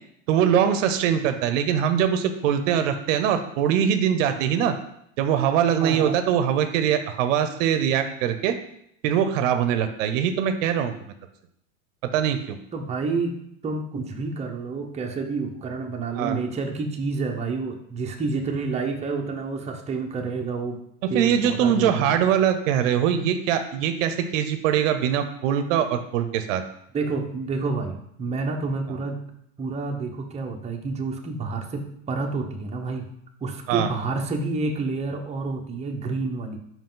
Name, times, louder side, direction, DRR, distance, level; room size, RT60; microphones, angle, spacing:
voice 1, 0.3-4.7 5.2-8.5 9.0-10.9 12.1-12.6 16.1-16.4 21.0-26.6 33.7-33.9, right 9 dB, 65° right, 9 dB, 0.7 m, -22 dB
voice 2, 5.8-6.2 12.7-13.4 13.6-20.8 21.1-22.1 26.9-29.2 29.6-33.1 33.4-36.6, right 3 dB, 15° right, 1 dB, 0.8 m, -29 dB
5.3 x 4.8 x 3.8 m, 0.73 s
supercardioid pair, 110°, 41 cm